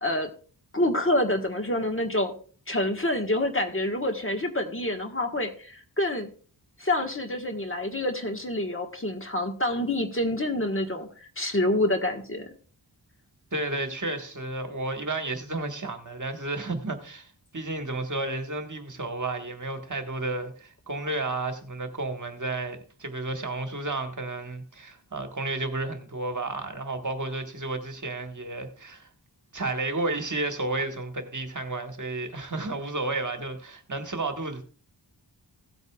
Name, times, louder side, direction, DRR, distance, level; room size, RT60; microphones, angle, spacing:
voice 1, 0.7-2.3 2.7-6.3 6.8-11.1 11.4-12.5, left 1 dB, 30° left, 1.4 m, -27 dB
voice 2, 13.5-29.1 29.5-34.6, right 2 dB, 45° right, 1.5 m, -32 dB
16.5 x 8.1 x 2.3 m
wide cardioid pair, 65°, 43 cm